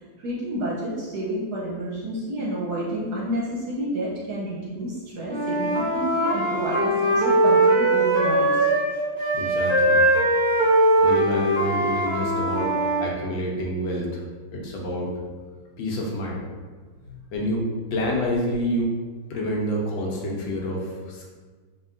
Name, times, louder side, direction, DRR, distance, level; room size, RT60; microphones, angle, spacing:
voice 1, 0.2-8.7 17.0-17.1, right 1 dB, 65° right, -5 dB, 1.1 m, -30 dB
Wind instrument woodwind instrument, 5.2-8.9 9.2-13.0, right 1 dB, 25° right, 0.4 m, -21 dB
voice 2, 9.3-10.0 11.0-14.2 14.5-15.2 15.8-16.4 17.3-18.9 19.3-21.3, equal, 75° left, -2 dB, 1.3 m, -28 dB
4.8 x 2.8 x 2.5 m, 1.4 s
omnidirectional pair, 2.2 m